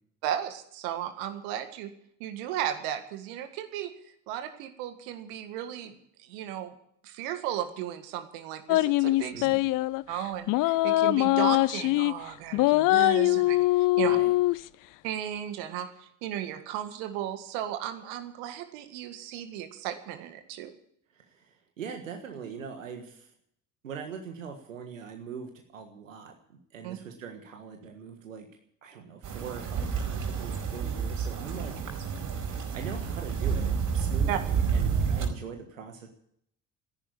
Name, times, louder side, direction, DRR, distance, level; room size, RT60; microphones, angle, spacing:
voice 1, 0.2-1.9 2.2-3.9 4.3-6.7 7.0-9.5 10.1-14.2 15.0-20.7 26.8-27.0 34.3-34.4, right 11 dB, 70° right, 9 dB, 1.8 m, -35 dB
sound 1, 8.7-10.0 10.5-12.1 12.5-14.6, left 18 dB, 55° left, 0.6 m, -23 dB
voice 2, 9.3-9.6 14.0-14.3 21.1-23.3 23.8-28.5 28.8-31.7 32.2-36.1, right 6 dB, 90° right, 4 dB, 1.6 m, -42 dB
sound 2, 29.2-35.3, right 6 dB, 55° right, 4.9 m, -29 dB
14.5 x 11.0 x 8.4 m, 0.69 s
hypercardioid pair, 55°, 38 cm